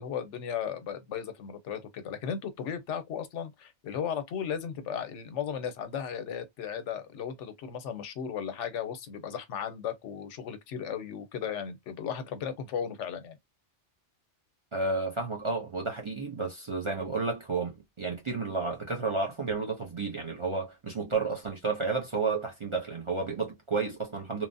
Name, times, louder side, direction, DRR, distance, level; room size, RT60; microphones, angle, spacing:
voice 1, 0.0-13.4, left 8 dB, 85° left, 1.0 m, -35 dB
voice 2, 14.7-24.5, right 4 dB, 35° right, 0.5 m, -31 dB
3.0 x 2.0 x 2.6 m
omnidirectional pair, 1.2 m